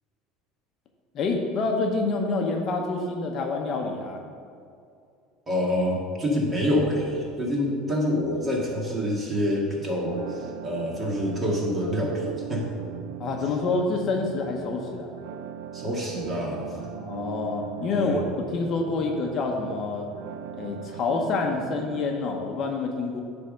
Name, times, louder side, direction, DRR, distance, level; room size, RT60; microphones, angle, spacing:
voice 1, 1.1-4.2 13.2-15.1 16.9-20.1 20.6-23.2, left 3 dB, 45° left, 2 dB, 0.8 m, -27 dB
voice 2, 5.5-12.7 15.7-16.7 17.9-18.2, equal, 20° right, -2 dB, 1.8 m, -26 dB
sound 1, 10.1-22.1, right 9 dB, 85° right, 0.5 m, -39 dB
9.3 x 3.5 x 6.4 m, 2.4 s
supercardioid pair, 125°, 0 cm